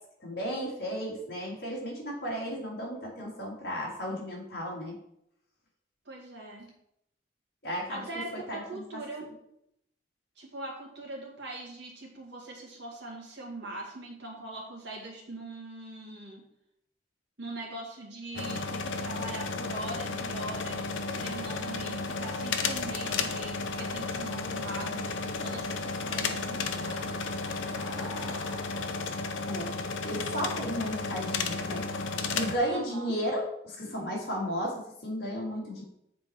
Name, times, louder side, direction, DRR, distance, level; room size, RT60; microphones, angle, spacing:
voice 1, 0.2-5.0 7.6-8.0 8.5-8.8 29.5-29.7 30.0-31.9 32.3-35.8, equal, 55° left, -3 dB, 2.2 m, -34 dB
voice 2, 6.1-6.7 7.9-9.3 10.4-16.4 17.4-27.2 32.7-33.1, right 2 dB, 65° right, -3 dB, 2.0 m, -42 dB
sound 1, 18.3-32.6, left 4 dB, 85° left, 0.6 m, -33 dB
sound 2, 26.1-28.7, left 2 dB, 20° right, 1.8 m, -50 dB
7.6 x 4.2 x 4.5 m, 0.78 s
head